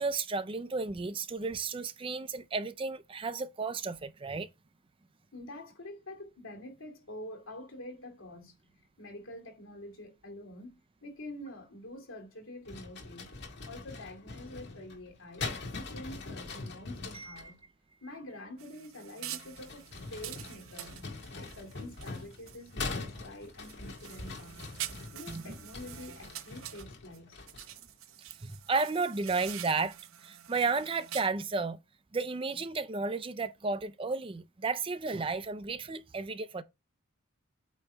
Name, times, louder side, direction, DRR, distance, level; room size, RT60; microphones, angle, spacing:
voice 1, 0.0-4.5 17.1-17.4 25.3-25.5 28.4-29.9 30.2-31.8 32.1-36.6, right 4 dB, 25° right, 0.4 m, -33 dB
voice 2, 5.3-15.5 15.8-17.6 18.0-21.0 21.3-24.7 25.1-27.4, left 1 dB, 70° left, 2.5 m, -47 dB
sound 1, 12.6-17.5 19.2-27.8, left 3 dB, 55° left, 1.9 m, -42 dB
sound 2, 18.6-22.8 23.2-27.2 27.5-31.3, right 12 dB, 75° right, 0.6 m, -46 dB
8.7 x 3.0 x 4.5 m
head